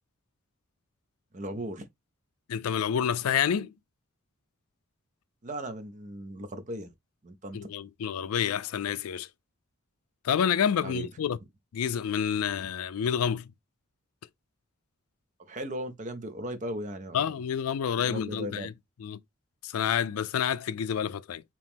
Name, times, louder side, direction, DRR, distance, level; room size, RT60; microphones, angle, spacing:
voice 1, 1.3-1.9 5.4-6.9 7.2-7.6 10.8-11.1 15.4-17.4 18.0-18.7, right 1 dB, 35° right, 0.5 m, -37 dB
voice 2, 2.5-3.7 7.5-9.3 10.2-11.4 11.7-13.5 17.1-18.7 19.0-19.2 19.6-21.4, left 8 dB, 85° left, 0.4 m, -28 dB
2.9 x 2.9 x 3.4 m
head